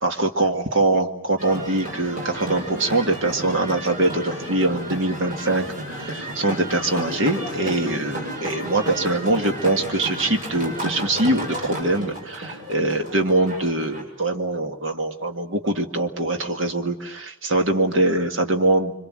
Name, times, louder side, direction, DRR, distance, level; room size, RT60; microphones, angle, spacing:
voice 1, 0.0-18.9, right 2 dB, 75° right, 5 dB, 2.0 m, -23 dB
sound 1, 1.4-14.0, right 1 dB, 40° right, 7.0 m, -32 dB
27.0 x 25.0 x 7.6 m, 0.81 s
head